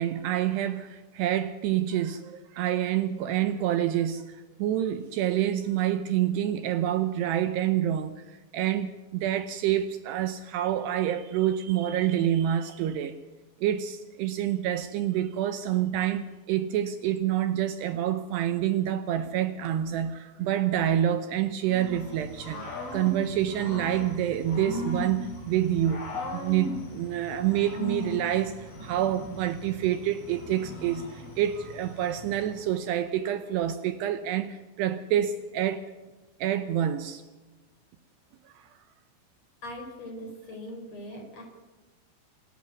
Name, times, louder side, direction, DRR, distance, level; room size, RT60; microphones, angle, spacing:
voice 1, 0.0-13.2 13.6-22.6 22.9-26.0 26.3-35.8 36.4-37.2 38.6-38.7, right 11 dB, 80° right, 10 dB, 2.5 m, -27 dB
Growling / Cricket, 21.7-32.6, left 1 dB, 50° left, 7.1 m, -38 dB
voice 2, 39.6-41.4, left 1 dB, 35° left, 3 dB, 5.1 m, -40 dB
26.5 x 11.5 x 9.5 m, 1.2 s
omnidirectional pair, 5.6 m